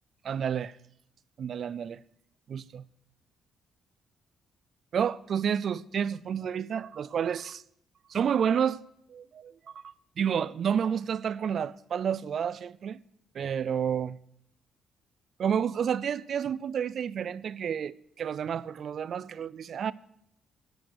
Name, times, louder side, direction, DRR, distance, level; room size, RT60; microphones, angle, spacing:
voice 1, 0.2-0.7 1.4-2.0 2.5-2.8 4.9-7.6 8.1-8.8 9.1-13.0 13.3-14.2 15.4-19.9, right 8 dB, 55° right, 0.4 m, -30 dB
10.5 x 8.4 x 6.5 m
cardioid pair, 90°, 0 cm